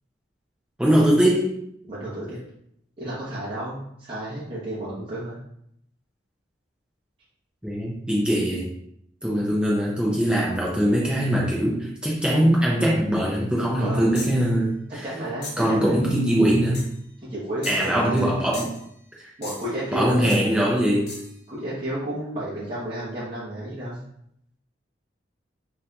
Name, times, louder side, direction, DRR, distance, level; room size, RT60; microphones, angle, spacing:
voice 1, 0.8-1.5 7.6-8.7 9.2-15.0 15.6-16.8 17.7-18.7 19.2-19.3 19.9-21.2, equal, 5° right, -4 dB, 0.5 m, -22 dB
voice 2, 1.8-2.4 3.0-5.4 13.8-14.2 15.0-16.1 17.3-18.4 19.4-20.5 21.5-24.0, right 1 dB, 30° right, -10 dB, 0.9 m, -31 dB
sound 1, 14.1-14.5 15.4-15.7 16.7-17.0 17.6-18.3 18.5-18.9 19.4-19.8 20.3-20.5 21.1-21.3, left 3 dB, 55° left, 0.7 m, -38 dB
4.1 x 2.6 x 2.3 m, 0.73 s
head